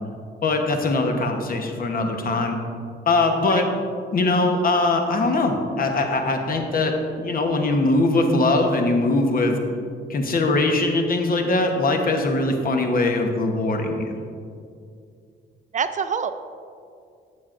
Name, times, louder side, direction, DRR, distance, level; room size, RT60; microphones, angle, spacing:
voice 1, 0.4-2.6 3.1-3.7 4.1-9.6 10.1-14.0, left 2 dB, 45° left, 4 dB, 1.1 m, -21 dB
voice 2, 15.7-16.3, right 6 dB, 40° right, 11 dB, 0.4 m, -25 dB
12.0 x 7.6 x 2.6 m, 2.4 s
cardioid pair, 90°, 20 cm